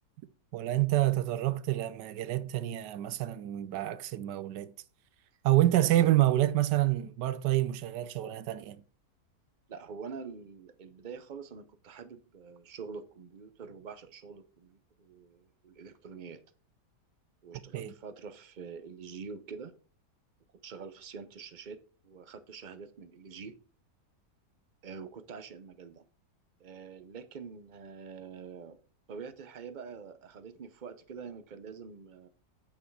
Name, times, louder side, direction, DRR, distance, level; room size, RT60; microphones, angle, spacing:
voice 1, 0.5-4.7 5.4-8.8 17.7-17.9, right 15 dB, 90° right, 1.3 m, -27 dB
voice 2, 9.7-16.4 17.4-19.7 20.6-23.5 24.8-26.0 26.6-28.8 29.1-32.3, right 5 dB, 45° right, 0.6 m, -45 dB
8.6 x 6.3 x 4.6 m
omnidirectional pair, 1.8 m